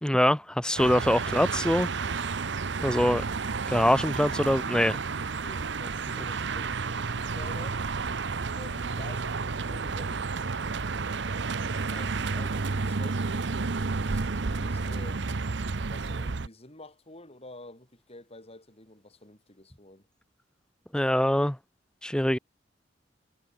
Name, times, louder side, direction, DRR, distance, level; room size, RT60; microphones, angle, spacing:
voice 1, 0.0-1.9 2.8-3.2 3.7-5.0 20.9-21.6 22.0-22.4, left 1 dB, 5° left, 0.7 m, -24 dB
sound 1, 0.8-16.5, right 4 dB, 70° right, 0.8 m, -31 dB
voice 2, 5.1-7.8 8.5-10.6 11.9-15.2 15.9-20.1, left 1 dB, 35° left, 6.9 m, -49 dB
head